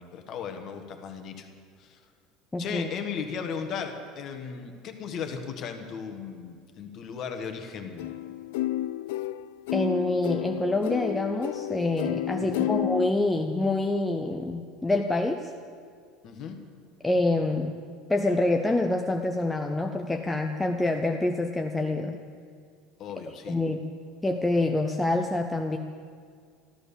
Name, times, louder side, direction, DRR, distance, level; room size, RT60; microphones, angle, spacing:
voice 1, 0.0-1.5 1.8-2.0 2.6-8.1 12.4-12.7 16.2-16.6 23.0-23.6, left 6 dB, 35° left, 6 dB, 1.4 m, -36 dB
voice 2, 2.5-2.9 9.7-15.5 17.0-17.7 18.1-22.2 23.5-23.8 24.2-25.8, left 2 dB, 5° left, 3 dB, 0.5 m, -26 dB
sound 1, 8.0-13.1, left 14 dB, 90° left, 0.3 m, -31 dB
13.5 x 13.5 x 6.9 m, 2.1 s
cardioid pair, 175°, 0 cm